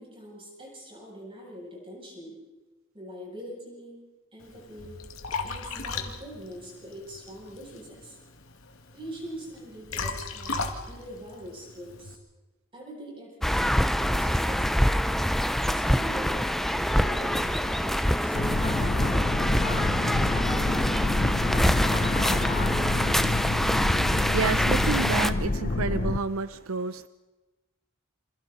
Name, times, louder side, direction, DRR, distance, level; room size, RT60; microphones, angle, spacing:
voice 1, 0.0-2.4 2.9-4.0 4.3-5.0 5.4-8.2 8.9-12.2 12.7-15.0 15.7-18.4, equal, 25° right, -2 dB, 7.9 m, -43 dB
Liquid, 4.4-12.2, left 4 dB, 80° left, 2.2 m, -37 dB
sound 1, 13.4-25.3, equal, ahead, 0.6 m, -25 dB
sound 2, 18.3-26.2, left 2 dB, 40° left, 0.8 m, -27 dB
voice 2, 24.1-27.1, right 5 dB, 80° right, 13 dB, 0.6 m, -30 dB
28.0 x 26.0 x 4.2 m, 1.1 s
head